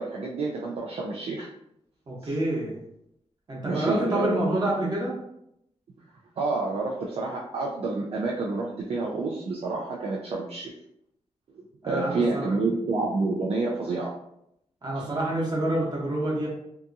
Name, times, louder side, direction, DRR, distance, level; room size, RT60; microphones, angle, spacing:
voice 1, 0.0-1.5 2.2-2.3 3.6-4.6 6.4-10.7 11.9-14.1 15.0-15.1, right 3 dB, 55° right, -3 dB, 0.4 m, -29 dB
voice 2, 2.1-2.7 3.5-5.2 11.8-12.5 14.8-16.5, right 1 dB, 35° right, -5 dB, 0.9 m, -27 dB
2.7 x 2.3 x 2.5 m, 0.78 s
wide cardioid pair, 160°, 12 cm